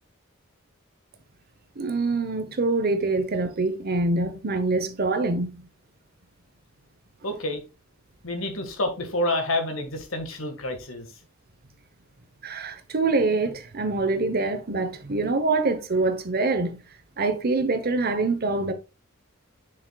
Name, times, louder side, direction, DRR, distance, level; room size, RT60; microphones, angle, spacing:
voice 1, 1.8-5.6 12.4-16.8 17.2-18.7, right 3 dB, 50° right, 1.0 m, -25 dB
voice 2, 7.2-7.6 8.2-11.1, left 1 dB, 70° left, 1.7 m, -28 dB
7.2 x 6.4 x 2.3 m
head